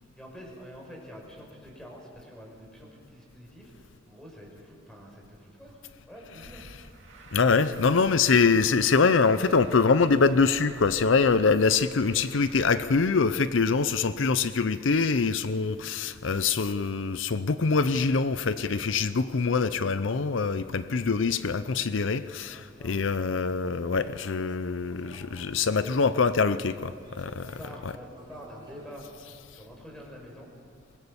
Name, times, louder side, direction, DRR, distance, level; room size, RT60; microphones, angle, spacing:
voice 1, 0.2-5.8 6.1-6.6 22.5-23.0 27.4-30.5, equal, 5° left, -1 dB, 5.3 m, -46 dB
Truck, 6.4-13.1, right 2 dB, 65° right, 3.0 m, -50 dB
voice 2, 7.3-27.5, left 4 dB, 75° left, 13 dB, 0.6 m, -24 dB
sound 1, 23.2-28.9, right 1 dB, 25° right, 5.7 m, -54 dB
24.0 x 20.5 x 7.1 m, 2.4 s
head